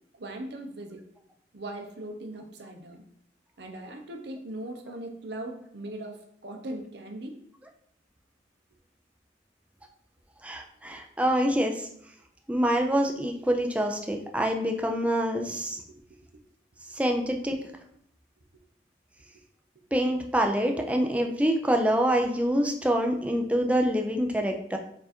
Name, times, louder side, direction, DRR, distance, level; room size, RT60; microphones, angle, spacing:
voice 1, 0.1-1.0 1.5-3.0 3.6-7.4 15.9-16.0 19.7-19.8, right 1 dB, 65° right, 4 dB, 0.7 m, -39 dB
voice 2, 10.4-11.9 12.5-15.8 16.9-17.6 19.9-24.8, equal, 5° right, 3 dB, 0.4 m, -26 dB
4.6 x 2.6 x 4.3 m, 0.69 s
head